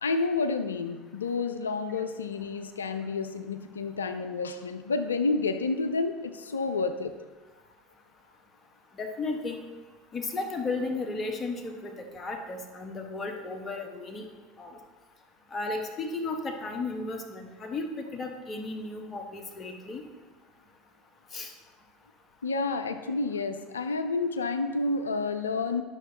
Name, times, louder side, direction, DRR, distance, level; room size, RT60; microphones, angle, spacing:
voice 1, 0.0-7.2 22.4-25.8, left 3 dB, 75° left, 9 dB, 0.4 m, -30 dB
voice 2, 8.9-9.6 10.1-14.3 14.6-14.8 15.5-20.0 21.3-21.5, left 3 dB, 30° left, 4 dB, 1.2 m, -34 dB
10.5 x 6.5 x 2.9 m, 1.3 s
figure-of-eight pair, 70°, 0 cm